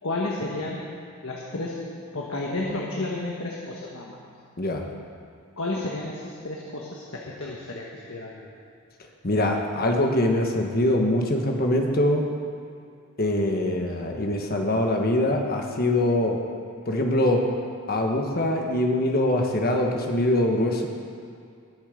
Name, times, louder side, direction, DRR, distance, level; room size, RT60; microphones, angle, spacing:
voice 1, 0.0-0.9 1.2-4.2 5.6-8.5, left 2 dB, 70° left, -2 dB, 1.3 m, -32 dB
sound 1, 2.6-6.1, right 1 dB, 5° right, 2.4 m, -47 dB
voice 2, 9.2-12.2 13.2-16.4 16.8-17.4 17.9-20.9, left 1 dB, 45° left, 2 dB, 1.4 m, -23 dB
20.0 x 7.3 x 5.1 m, 2.3 s
head